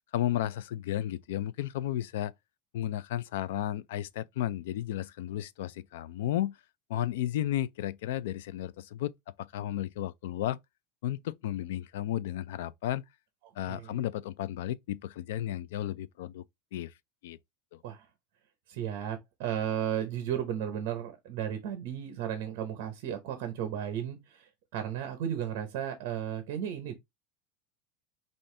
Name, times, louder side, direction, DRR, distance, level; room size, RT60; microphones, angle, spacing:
voice 1, 0.1-2.3 2.7-6.6 6.9-9.1 9.4-10.6 11.0-13.0 13.6-16.4 16.7-16.9 17.2-17.4 17.7-17.8, left 12 dB, 75° left, 0.3 m, -33 dB
voice 2, 13.4-14.0 17.8-18.1 18.7-26.9, right 10 dB, 45° right, 0.9 m, -34 dB
5.5 x 2.6 x 3.3 m
supercardioid pair, 175°, 0 cm